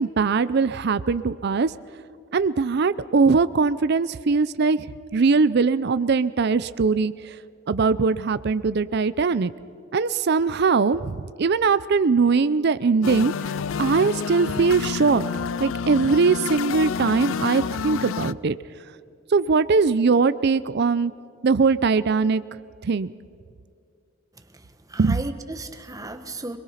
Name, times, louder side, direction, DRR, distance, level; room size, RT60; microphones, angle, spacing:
voice 1, 0.0-1.7 2.3-4.9 5.1-7.4 7.7-9.5 9.9-13.3 13.8-15.3 15.6-18.6 19.3-21.1 21.4-22.4 22.8-23.1 25.0-25.2, right 4 dB, 55° right, 15 dB, 0.5 m, -21 dB
sound 1, 13.0-18.3, left 6 dB, 80° left, 0.5 m, -29 dB
voice 2, 24.4-26.6, right 2 dB, 20° right, 7 dB, 1.4 m, -36 dB
27.0 x 21.5 x 5.7 m, 2.4 s
head